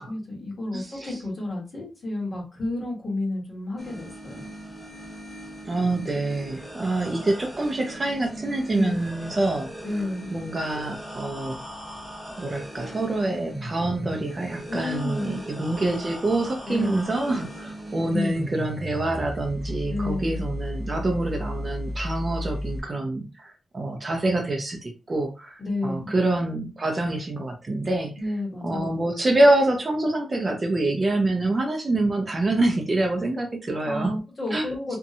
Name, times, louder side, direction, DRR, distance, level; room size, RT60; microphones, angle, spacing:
voice 1, 0.0-4.5 8.7-9.0 9.8-10.3 14.7-15.4 16.7-17.1 18.1-18.3 19.9-20.4 25.6-26.1 28.2-29.0 33.8-35.0, left 2 dB, 30° left, -3 dB, 1.1 m, -31 dB
voice 2, 0.7-1.2 5.6-9.7 10.3-11.6 12.4-28.1 28.6-34.1 34.5-34.7 34.9-35.0, right 2 dB, 25° right, 2 dB, 0.4 m, -26 dB
sound 1, 3.8-22.8, equal, ahead, 0.9 m, -37 dB
2.6 x 2.1 x 2.6 m, 0.30 s
wide cardioid pair, 155°, 0 cm